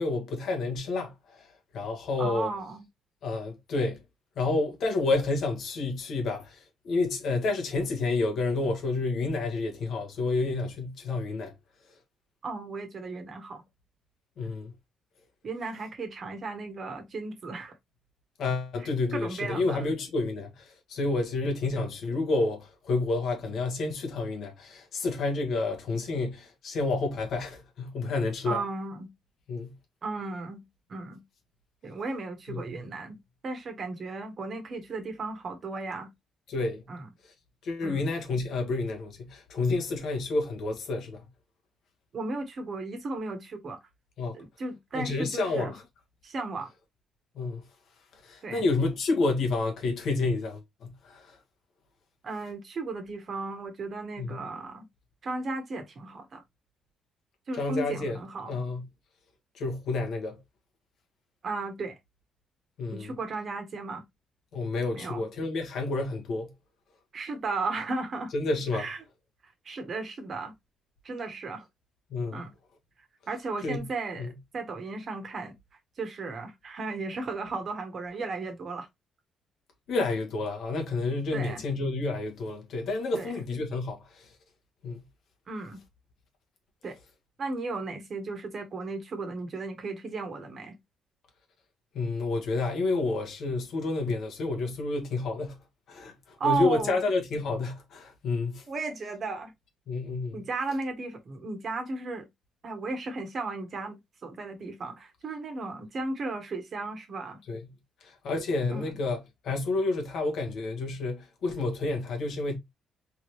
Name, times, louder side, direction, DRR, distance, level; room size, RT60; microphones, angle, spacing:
voice 1, 0.0-1.4 1.7-2.5 3.2-4.0 4.4-11.5 14.4-14.7 18.4-28.6 29.5-29.8 32.5-32.7 36.5-36.8 37.6-41.2 44.2-44.4 44.9-45.8 47.3-47.6 48.2-51.4 54.2-54.5 57.6-58.2 58.5-58.8 59.5-60.4 62.8-63.1 64.5-66.5 68.3-68.9 72.1-72.5 73.6-73.9 74.2-74.3 79.9-84.3 84.8-85.0 91.9-95.6 95.9-98.6 99.9-100.4 107.5-107.7 108.0-112.6, left 3 dB, 70° left, 1.5 m, -29 dB
voice 2, 2.2-2.9 12.4-13.6 15.4-17.7 18.8-19.9 28.4-29.1 30.0-30.6 30.9-31.2 31.8-33.2 33.4-36.1 36.9-37.1 37.8-38.0 42.1-43.8 44.3-45.7 46.2-46.7 48.4-48.6 52.2-54.8 55.2-56.4 57.5-58.5 61.4-61.9 62.9-64.0 64.9-65.2 67.1-68.3 68.7-69.0 69.6-70.5 71.0-71.6 72.3-72.5 73.3-75.5 76.0-78.9 81.3-81.6 83.1-83.3 85.5-85.8 86.8-86.9 87.4-90.7 96.4-97.0 98.7-99.5 100.3-102.2 102.6-107.4 108.7-109.0, right 3 dB, 50° right, 1.3 m, -35 dB
3.7 x 3.0 x 3.1 m
cardioid pair, 90°, 0 cm